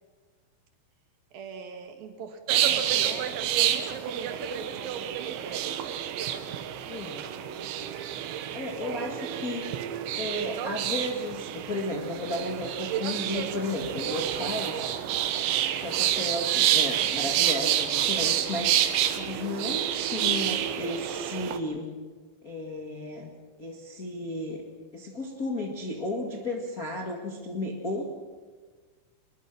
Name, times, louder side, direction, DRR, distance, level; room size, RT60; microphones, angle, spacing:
voice 1, 1.3-5.6 8.8-9.3, right 5 dB, 60° right, 6 dB, 3.2 m, -40 dB
sound 1, 2.5-21.6, right 11 dB, 85° right, 3.5 m, -28 dB
voice 2, 6.9-7.2 8.5-9.7 10.1-14.8 15.8-18.7 19.1-21.9 22.4-23.3 23.6-24.6 24.9-28.0, left 2 dB, 45° left, 0 dB, 1.1 m, -33 dB
25.0 x 21.0 x 6.2 m, 1.4 s
omnidirectional pair, 5.2 m